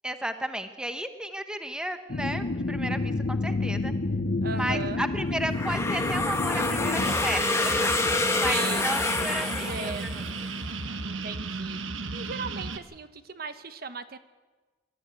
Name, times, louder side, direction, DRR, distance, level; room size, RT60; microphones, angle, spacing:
voice 1, 0.0-3.9 4.5-9.7 10.0-10.4, right 1 dB, 5° right, 8 dB, 1.0 m, -33 dB
sound 1, 2.1-7.2, left 2 dB, 50° left, 0.7 m, -29 dB
voice 2, 4.4-5.0 8.4-8.8 9.5-10.0 11.0-11.8 12.1-14.2, right 4 dB, 50° right, 11 dB, 1.0 m, -37 dB
sound 2, 5.5-10.4, left 2 dB, 15° left, 1.3 m, -27 dB
sound 3, 7.0-12.8, right 3 dB, 85° right, 1.3 m, -34 dB
24.0 x 13.5 x 9.4 m, 1.3 s
head